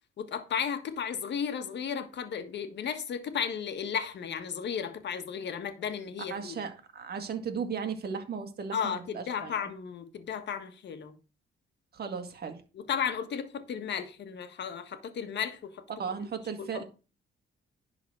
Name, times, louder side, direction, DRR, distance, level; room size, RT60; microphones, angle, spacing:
voice 1, 0.2-6.5 8.7-11.1 12.9-15.8 16.6-16.8, left 7 dB, 60° left, 1.5 m, -34 dB
voice 2, 6.3-9.6 11.9-12.6 16.0-16.8, right 6 dB, 55° right, 1.9 m, -36 dB
11.0 x 4.1 x 6.3 m
cardioid pair, 90°, 20 cm